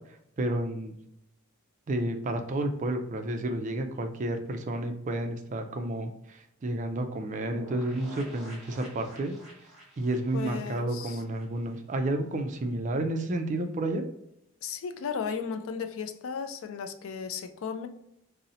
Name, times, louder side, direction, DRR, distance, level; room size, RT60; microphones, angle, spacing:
voice 1, 0.4-1.0 1.9-9.3 10.0-14.0, right 1 dB, 35° right, 6 dB, 0.3 m, -31 dB
sound 1, 7.5-12.1 12.4-12.5 12.7-12.8, equal, ahead, 0.9 m, -50 dB
voice 2, 10.3-11.2 14.6-17.9, left 6 dB, 65° left, 7 dB, 0.3 m, -35 dB
2.7 x 2.0 x 3.8 m, 0.78 s
head